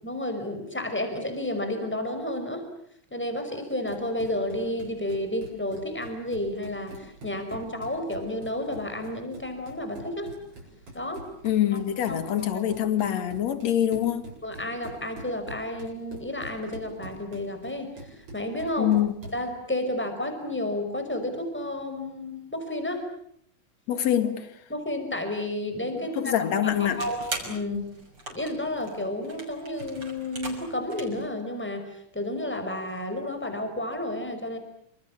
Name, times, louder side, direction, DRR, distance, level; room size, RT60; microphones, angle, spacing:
voice 1, 0.0-2.7 3.1-10.3 10.9-11.2 11.7-12.7 14.4-19.0 19.3-23.0 24.7-26.7 27.0-27.8 28.3-34.6, left 1 dB, 5° left, 5.3 m, -31 dB
Run, 3.7-19.5, right 1 dB, 70° right, 9.5 m, -45 dB
voice 2, 11.4-14.3 18.8-19.1 23.9-24.5 25.9-27.0, left 10 dB, 60° left, 3.2 m, -25 dB
sound 1, 26.6-31.3, right 2 dB, 35° right, 6.8 m, -40 dB
28.5 x 27.0 x 7.3 m
omnidirectional pair, 3.4 m